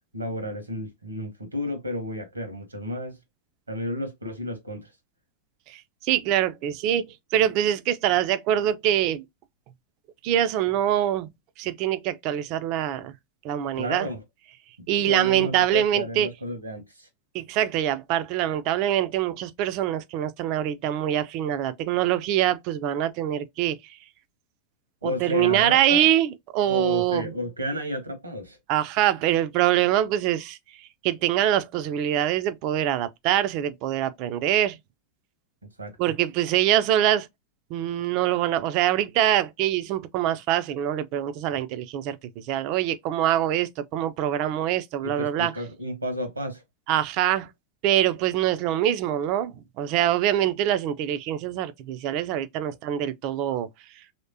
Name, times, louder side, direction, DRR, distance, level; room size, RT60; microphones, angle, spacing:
voice 1, 0.1-3.2 3.7-4.9 13.7-14.2 14.8-17.1 25.0-26.1 26.6-28.6 35.8-35.9 45.0-46.6, left 1 dB, 80° right, 1.1 m, -32 dB
voice 2, 5.7-9.2 10.2-11.3 11.6-13.1 13.4-14.1 14.9-16.3 17.3-24.0 25.0-27.3 28.7-34.8 36.0-37.3 37.7-42.2 42.4-45.5 46.9-47.5 47.8-53.7, right 11 dB, 40° right, 0.4 m, -24 dB
3.1 x 2.8 x 2.7 m
figure-of-eight pair, 90°, 0 cm